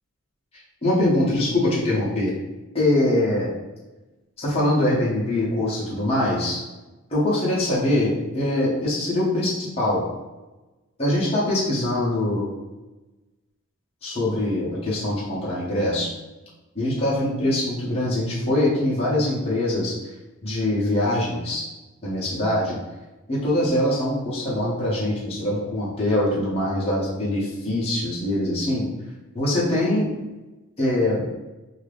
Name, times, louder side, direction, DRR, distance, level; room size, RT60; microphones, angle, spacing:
voice 1, 0.8-2.3 2.7-3.5 4.4-6.6 7.1-10.0 11.0-12.5 14.0-16.1 16.7-19.9 20.4-21.6 22.0-22.8 23.3-28.9 29.3-30.1 30.8-31.2, left 1 dB, 25° left, -8 dB, 0.8 m, -23 dB
2.8 x 2.4 x 3.3 m, 1.1 s
head